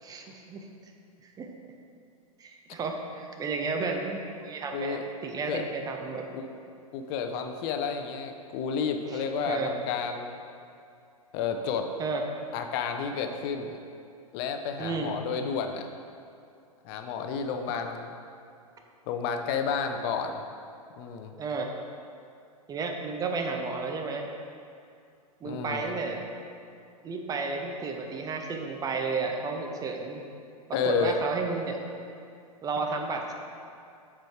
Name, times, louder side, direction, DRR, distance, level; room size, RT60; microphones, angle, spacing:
voice 1, 0.0-0.7 1.2-1.5 2.4-6.2 9.1-9.7 12.0-12.2 14.8-15.1 21.4-21.7 22.7-24.3 25.4-26.3 27.0-30.2 30.8-31.8 32.6-33.3, right 4 dB, 20° right, 3 dB, 0.6 m, -32 dB
voice 2, 4.7-5.0 5.5-5.7 6.3-6.4 6.9-10.4 11.3-11.9 12.5-13.8 14.3-15.9 16.8-18.1 19.1-20.4 21.0-21.3 25.4-25.9 30.7-31.1, left 6 dB, 40° left, 6 dB, 0.6 m, -31 dB
7.5 x 4.7 x 3.6 m, 2.5 s
hypercardioid pair, 105°, 19 cm